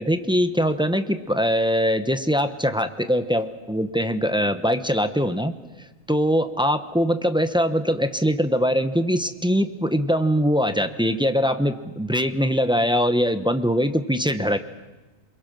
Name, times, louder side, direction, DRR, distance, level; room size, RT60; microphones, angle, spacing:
voice 1, 0.0-5.6 6.1-14.6, equal, 5° right, 8 dB, 0.6 m, -22 dB
28.5 x 22.0 x 6.2 m, 1.1 s
omnidirectional pair, 1.5 m